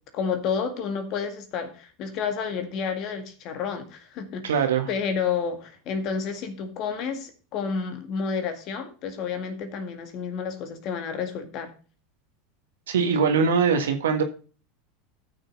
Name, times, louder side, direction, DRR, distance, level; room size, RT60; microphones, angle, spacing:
voice 1, 0.1-11.7, left 6 dB, 50° left, 2.0 m, -30 dB
voice 2, 4.4-4.9 12.9-14.2, right 6 dB, 75° right, 1.5 m, -22 dB
13.5 x 6.4 x 4.0 m
hypercardioid pair, 85°, 0 cm